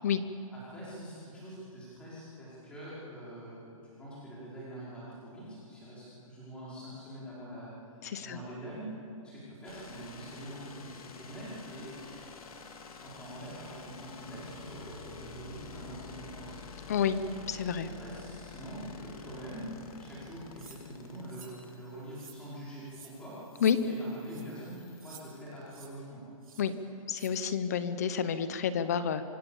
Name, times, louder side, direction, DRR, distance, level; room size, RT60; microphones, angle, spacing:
voice 1, 0.5-7.7 8.2-8.9 9.2-11.9 13.0-16.6 17.8-19.7 20.0-23.4 23.8-26.2, right 1 dB, 5° left, -9 dB, 5.2 m, -45 dB
voice 2, 8.0-8.4 16.9-17.2 17.5-17.9 23.6-23.8 26.6-26.7 27.1-29.2, left 7 dB, 30° left, 12 dB, 0.8 m, -29 dB
sound 1, 9.6-25.8, left 5 dB, 90° left, 3.2 m, -49 dB
sound 2, 20.6-20.8 21.3-21.6 22.1-22.4 22.9-23.1 23.5-23.7 24.3-24.4 25.0-25.2 25.7-25.9 26.4-26.6 27.1-27.3, right 6 dB, 80° right, 7.6 m, -52 dB
25.0 x 20.5 x 7.2 m, 2.6 s
hypercardioid pair, 180°, 18 cm